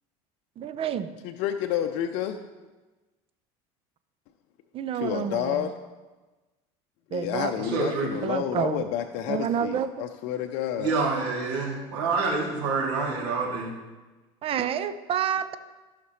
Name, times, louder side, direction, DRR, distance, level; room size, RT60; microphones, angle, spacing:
voice 1, 0.6-1.1 4.7-5.7 7.1-7.5 8.2-8.9 9.3-9.9 14.4-15.5, right 9 dB, 40° right, 12 dB, 0.6 m, -29 dB
voice 2, 1.2-2.4 4.9-5.7 7.1-10.9, left 10 dB, 65° left, 5 dB, 0.6 m, -29 dB
voice 3, 7.6-8.1 10.8-13.7, right 4 dB, 85° right, -4 dB, 2.9 m, -27 dB
14.0 x 5.8 x 3.2 m, 1.2 s
supercardioid pair, 105°, 15 cm